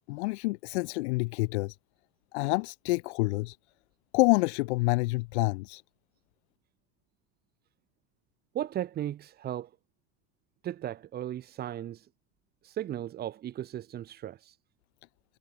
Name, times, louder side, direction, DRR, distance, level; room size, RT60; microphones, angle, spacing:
voice 1, 0.1-1.8 2.3-3.6 4.1-5.8, left 24 dB, 70° left, 1.0 m, -27 dB
voice 2, 8.5-9.7 10.6-12.0 12.6-14.4, right 11 dB, 25° right, 3.6 m, -36 dB
cardioid pair, 170°, 35 cm